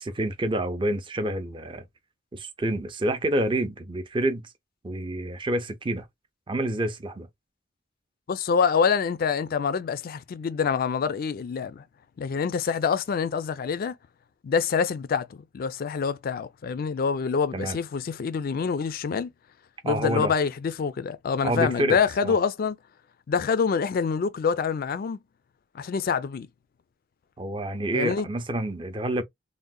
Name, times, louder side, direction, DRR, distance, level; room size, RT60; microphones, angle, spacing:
voice 1, 0.0-1.9 2.3-4.4 4.8-6.1 6.5-7.3 17.5-17.8 19.8-20.3 21.4-22.4 27.4-29.2, right 1 dB, 25° right, 0.5 m, -28 dB
voice 2, 8.3-11.8 12.2-13.9 14.4-19.3 19.8-22.8 23.3-25.2 25.7-26.5 27.9-28.3, left 6 dB, 50° left, 0.3 m, -26 dB
3.6 x 2.1 x 2.2 m
head